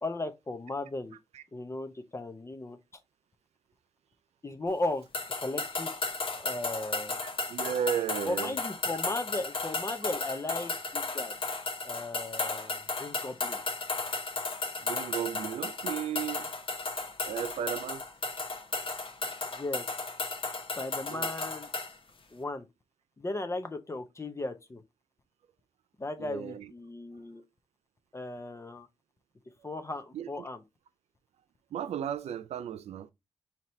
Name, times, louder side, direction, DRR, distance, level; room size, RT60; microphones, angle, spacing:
voice 1, 0.0-1.2 1.5-2.8 4.4-5.0 5.4-5.9 6.4-7.2 8.3-11.4 11.8-13.6 19.4-19.9 20.8-21.7 22.3-22.7 23.2-24.8 26.0-27.4 28.1-28.9 29.6-30.6, left 2 dB, 25° left, 0.6 m, -36 dB
sound 1, 5.1-21.9, left 3 dB, 55° left, 0.8 m, -34 dB
voice 2, 7.2-8.6 14.8-16.5 17.2-18.0 21.1-21.3 26.2-26.7 30.1-30.5 31.7-33.1, right 9 dB, 90° right, 0.4 m, -35 dB
5.8 x 2.8 x 3.1 m
cardioid pair, 90°, 11 cm